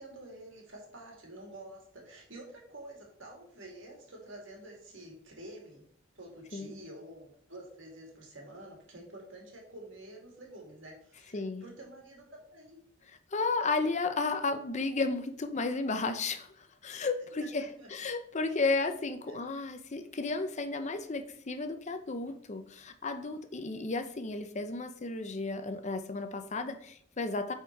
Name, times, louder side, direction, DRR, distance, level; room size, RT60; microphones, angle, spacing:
voice 1, 0.0-5.8 6.1-12.8 17.6-17.9 19.3-19.4, right 1 dB, 65° right, 0 dB, 2.6 m, -49 dB
voice 2, 11.3-11.6 13.3-17.7 17.9-27.5, left 3 dB, 35° left, 9 dB, 0.6 m, -33 dB
8.3 x 4.4 x 4.6 m, 0.63 s
head